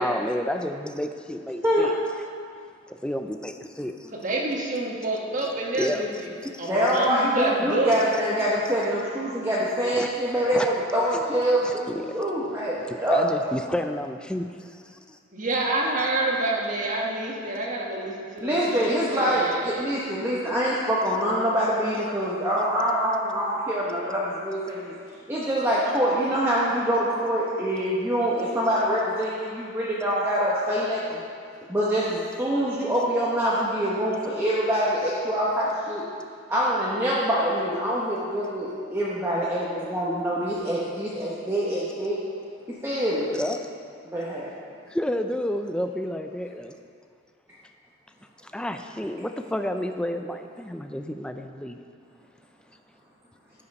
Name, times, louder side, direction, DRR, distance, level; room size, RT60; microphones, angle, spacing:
voice 1, 0.0-1.9 2.9-4.1 5.7-6.7 9.9-10.1 10.5-10.7 11.1-11.2 11.5-12.2 12.8-15.2 43.3-43.7 44.9-46.8 48.4-51.8, left 1 dB, 5° left, 6 dB, 0.4 m, -30 dB
voice 2, 4.1-6.1 6.6-7.9 15.3-20.1, right 2 dB, 35° right, -2 dB, 1.3 m, -28 dB
voice 3, 6.7-12.8 13.0-13.2 18.4-24.9 25.3-31.2 31.7-36.0 36.5-42.2 42.8-43.3 44.0-44.5, equal, 10° right, -7 dB, 0.9 m, -25 dB
12.5 x 5.5 x 5.3 m, 2.3 s
head